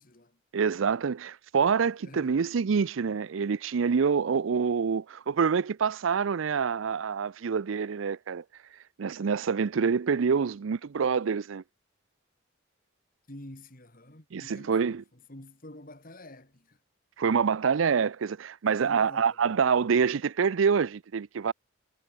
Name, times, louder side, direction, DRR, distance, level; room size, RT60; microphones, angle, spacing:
voice 1, 0.0-0.4 2.0-2.4 13.3-16.8 18.8-19.5, left 1 dB, 45° left, 3.5 m, -48 dB
voice 2, 0.5-8.4 9.0-11.6 14.3-15.0 17.2-21.5, right 6 dB, 85° right, 0.5 m, -26 dB
head